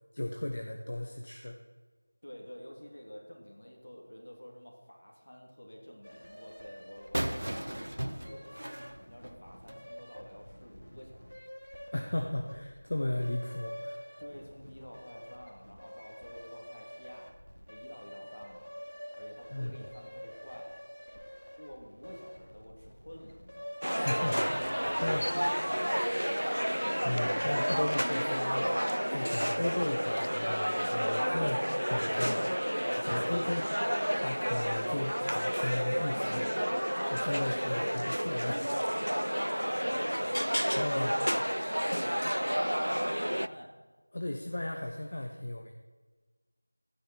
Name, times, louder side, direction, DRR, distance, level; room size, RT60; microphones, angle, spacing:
voice 1, 0.1-1.6 11.9-14.0 19.5-19.7 23.8-24.7 25.0-25.3 27.0-28.7 29.1-32.5 32.9-33.7 34.2-36.4 37.0-38.7 39.0-39.1 40.7-41.1 44.1-45.7, left 1 dB, 35° left, 3 dB, 0.8 m, -35 dB
voice 2, 2.2-8.7 9.1-11.4 14.2-17.3 17.7-18.7 19.2-20.7 21.6-24.4 24.9-26.7 36.1-36.5 39.0-43.7, equal, 55° left, 0 dB, 2.9 m, -50 dB
sound 1, 6.0-25.5, equal, 75° left, 2.3 m, -48 dB
sound 2, 7.1-9.9, right 1 dB, 45° right, 1.1 m, -36 dB
sound 3, 23.8-43.5, equal, 80° right, 0.4 m, -31 dB
13.5 x 9.5 x 4.6 m, 1.4 s
figure-of-eight pair, 175°, 0 cm